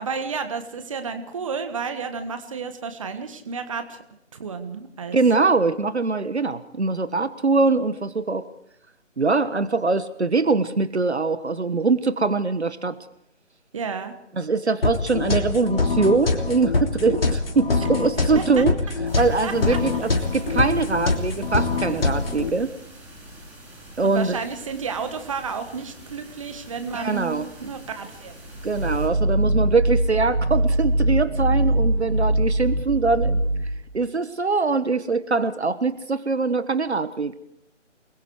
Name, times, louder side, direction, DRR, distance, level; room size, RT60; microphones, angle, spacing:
voice 1, 0.0-4.0 4.3-5.2 13.7-14.1 18.0-18.1 18.3-18.6 19.4-19.5 24.0-28.4, right 5 dB, 25° right, 8 dB, 1.5 m, -31 dB
voice 2, 5.1-8.4 9.2-13.0 14.4-18.8 19.1-22.7 24.0-24.4 26.9-27.5 28.6-33.3 33.9-37.4, right 4 dB, 60° right, 13 dB, 1.5 m, -22 dB
sound 1, 14.8-22.5, left 3 dB, 50° left, 3.3 m, -24 dB
sound 2, 19.1-29.1, right 1 dB, 5° right, 3.8 m, -45 dB
sound 3, 28.5-34.0, right 1 dB, 85° right, 2.4 m, -22 dB
28.5 x 21.5 x 4.8 m, 0.77 s
figure-of-eight pair, 150°, 37 cm